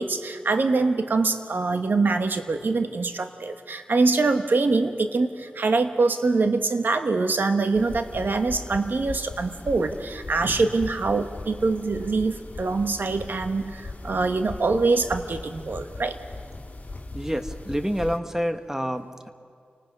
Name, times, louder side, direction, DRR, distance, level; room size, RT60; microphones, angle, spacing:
voice 1, 0.0-16.2, right 3 dB, 70° right, 7 dB, 1.4 m, -24 dB
sound 1, 7.7-18.2, left 2 dB, 50° left, 2.7 m, -39 dB
voice 2, 17.1-19.3, equal, 15° right, 8 dB, 1.4 m, -28 dB
29.5 x 19.0 x 5.4 m, 2.2 s
cardioid pair, 40°, 4 cm